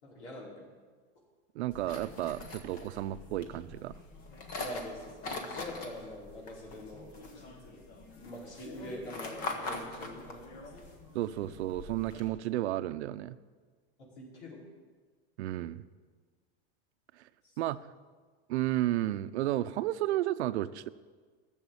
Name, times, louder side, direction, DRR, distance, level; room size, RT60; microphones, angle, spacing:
voice 1, 0.0-0.6 4.6-7.8 8.2-10.5 14.1-14.6 17.4-17.5, left 1 dB, 80° left, -3 dB, 5.0 m, -44 dB
voice 2, 1.5-4.0 11.1-13.4 15.4-15.8 17.2-17.3 17.6-17.9 18.5-20.9, right 14 dB, 80° right, 14 dB, 0.6 m, -32 dB
sound 1, 1.7-12.3, left 2 dB, 25° left, 1.1 m, -43 dB
14.0 x 7.3 x 7.2 m, 1.5 s
supercardioid pair, 175°, 33 cm